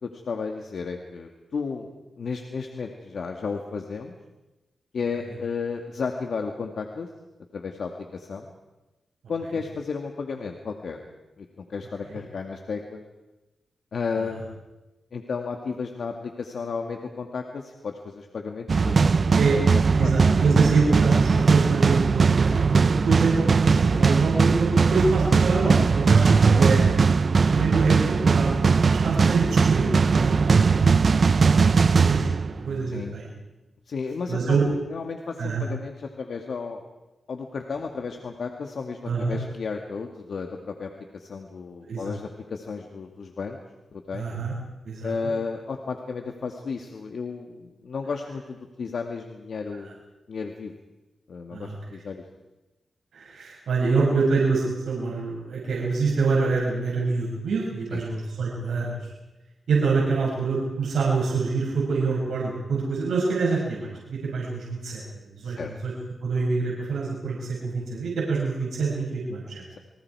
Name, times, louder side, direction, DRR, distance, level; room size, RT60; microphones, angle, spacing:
voice 1, 0.0-1.9 2.2-4.1 4.9-7.1 7.5-8.5 9.3-11.0 11.4-13.0 13.9-14.6 15.1-20.2 27.6-27.7 32.9-33.2 33.9-34.6 34.9-36.8 37.3-43.6 43.9-44.3 45.0-50.0 50.3-50.7 51.3-52.2 57.9-58.0 65.4-65.7, left 5 dB, 70° left, 3 dB, 2.0 m, -33 dB
sound 1, 18.7-32.9, right 5 dB, 50° right, 0.8 m, -20 dB
voice 2, 20.0-31.1 31.6-32.2 32.6-33.3 34.3-34.6 35.4-35.6 39.0-39.4 41.8-42.0 44.1-44.5 44.8-45.1 51.5-51.7 53.1-59.0 59.7-65.9 66.2-69.6, right 4 dB, 90° right, -4 dB, 6.6 m, -26 dB
29.5 x 24.0 x 4.8 m, 1.0 s
cardioid pair, 85°, 0 cm